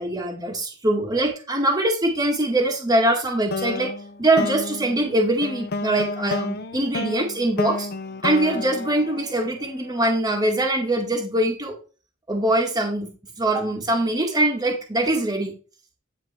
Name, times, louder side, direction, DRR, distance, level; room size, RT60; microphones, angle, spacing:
voice 1, 0.0-3.9 4.2-7.9 8.2-11.8 12.3-13.1 13.4-15.5, right 1 dB, 20° right, -1 dB, 2.0 m, -23 dB
sound 1, 3.5-9.9, left 3 dB, 55° left, 0.8 m, -31 dB
10.5 x 4.5 x 4.3 m, 0.35 s
head